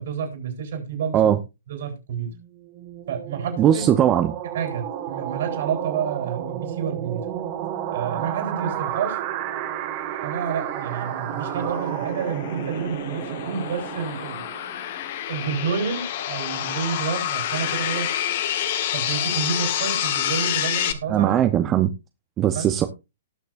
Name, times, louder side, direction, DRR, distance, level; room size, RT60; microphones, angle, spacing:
voice 1, 0.0-1.4 1.7-2.3 3.1-3.8 4.5-7.3 7.9-9.2 10.2-14.5 15.3-18.1 18.9-21.3 22.5-22.7, right 6 dB, 60° right, 4.2 m, -29 dB
sound 1, 2.3-14.9, right 11 dB, 40° right, 1.9 m, -32 dB
voice 2, 3.6-4.3 21.1-21.9 22.4-22.9, right 10 dB, 25° right, 0.8 m, -19 dB
sound 2, 10.1-20.9, left 11 dB, 50° left, 1.3 m, -28 dB
19.0 x 6.5 x 2.6 m
figure-of-eight pair, 115°, 0 cm